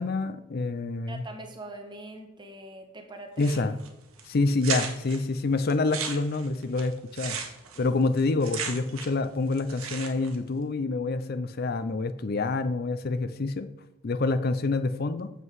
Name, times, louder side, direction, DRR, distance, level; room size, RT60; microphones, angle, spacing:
voice 1, 0.0-1.2 3.4-3.8 4.2-7.4 7.8-13.7 14.0-15.3, left 3 dB, 45° left, 11 dB, 0.5 m, -27 dB
voice 2, 1.1-3.6 7.7-8.0, right 1 dB, 20° right, 4 dB, 1.2 m, -43 dB
sound 1, 3.4-3.9 4.2-4.3 4.6-5.2 5.7-9.2 9.5-10.3, right 6 dB, 85° right, 1.5 m, -35 dB
8.2 x 7.7 x 4.7 m, 0.95 s
head